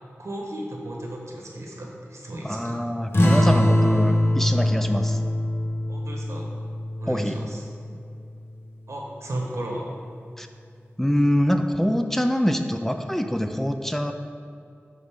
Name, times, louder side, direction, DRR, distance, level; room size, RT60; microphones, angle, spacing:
voice 1, 0.2-2.8 5.9-6.5 7.0-7.7 8.9-9.9, right 1 dB, 80° right, -1 dB, 1.2 m, -34 dB
voice 2, 2.4-5.2 7.1-7.4 10.4-10.5 11.0-14.1, equal, 5° left, 6 dB, 0.4 m, -24 dB
sound 1, 3.1-8.2, left 1 dB, 55° left, 1.0 m, -22 dB
11.0 x 3.9 x 3.6 m, 2.4 s
wide cardioid pair, 50°, 5 cm